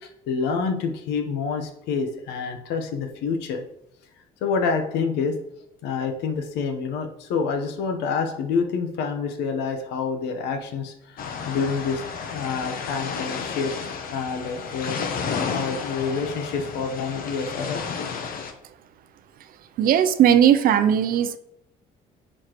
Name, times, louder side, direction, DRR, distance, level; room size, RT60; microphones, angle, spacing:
voice 1, 0.0-3.6 4.4-5.4 5.8-12.0 12.3-13.7 14.1-15.0 15.5-17.8, left 5 dB, 85° left, 0.9 m, -27 dB
sound 1, 11.2-18.5, left 6 dB, 60° left, 0.9 m, -32 dB
voice 2, 19.8-21.4, right 9 dB, 60° right, 0.5 m, -18 dB
9.8 x 4.4 x 3.0 m
cardioid pair, 110°, 17 cm